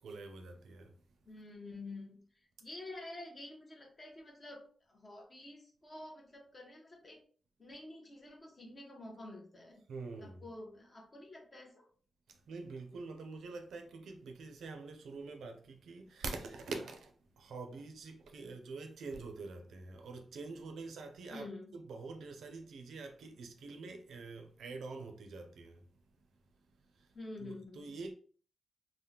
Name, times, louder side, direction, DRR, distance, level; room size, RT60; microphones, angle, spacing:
voice 1, 0.0-1.2 9.9-10.5 12.3-26.4 26.8-27.1 27.4-28.1, right 3 dB, 90° right, 0.5 m, -46 dB
voice 2, 1.3-2.2 2.6-7.2 7.6-9.8 10.2-11.9 21.3-21.7 27.1-27.9, left 2 dB, 30° left, 0.8 m, -49 dB
3.4 x 2.1 x 2.8 m
wide cardioid pair, 120°, 0 cm